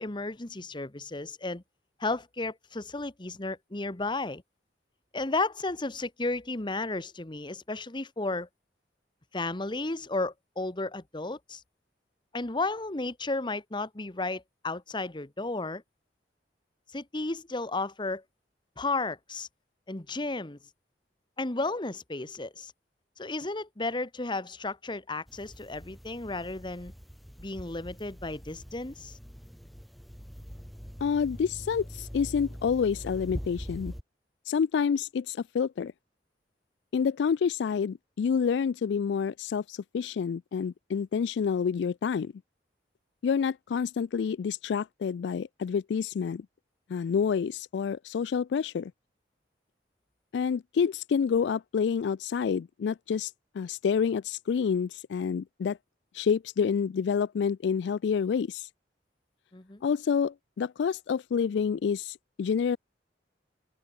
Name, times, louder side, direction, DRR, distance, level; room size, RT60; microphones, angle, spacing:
voice 1, 0.0-1.6 2.0-4.4 5.1-8.5 9.3-11.6 12.3-15.8 16.9-18.2 18.8-19.5 19.9-20.6 21.4-22.7 23.2-26.9 27.4-29.1 59.5-59.8, left 2 dB, 25° left, 1.2 m, -33 dB
sound 1, 25.3-34.0, equal, ahead, 0.8 m, -43 dB
voice 2, 31.0-33.9 34.5-35.9 36.9-42.3 43.2-46.5 46.9-48.9 50.3-55.8 56.1-58.7 59.8-62.8, left 6 dB, 70° left, 0.3 m, -28 dB
open air
head